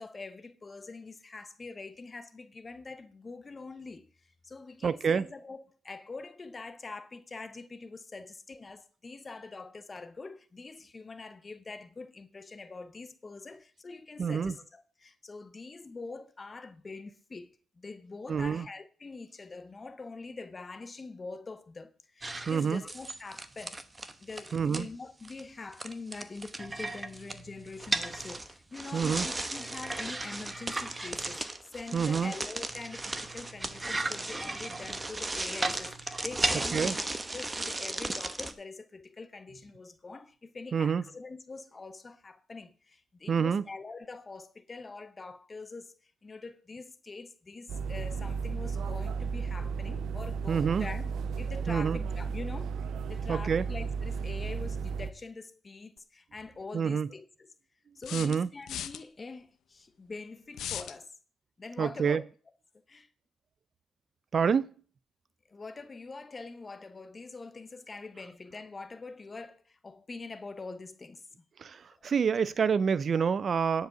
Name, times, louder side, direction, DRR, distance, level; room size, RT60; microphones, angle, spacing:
voice 1, 0.0-23.8 24.2-37.0 37.3-51.1 51.4-52.7 53.1-57.5 57.9-61.1 61.6-62.2 62.9-63.1 65.5-71.3, left 3 dB, 30° left, 0.8 m, -44 dB
voice 2, 4.8-5.3 14.2-14.5 18.3-18.7 22.5-22.8 24.5-24.9 28.9-29.3 31.9-32.3 36.7-36.9 40.7-41.0 43.3-43.6 50.5-50.9 51.7-52.0 53.3-53.7 56.7-57.1 58.1-58.5 61.8-62.2 64.3-64.7 71.6-73.9, right 6 dB, 45° right, 0.4 m, -27 dB
sound 1, 22.2-24.8 25.2-25.4 25.7-38.5, right 2 dB, 20° right, 0.9 m, -35 dB
sound 2, 47.7-55.1, right 5 dB, 70° right, 0.7 m, -34 dB
sound 3, 56.0-56.1 58.0-59.0 60.5-61.0, left 10 dB, 75° left, 0.6 m, -37 dB
10.5 x 4.8 x 6.8 m
cardioid pair, 90°, 0 cm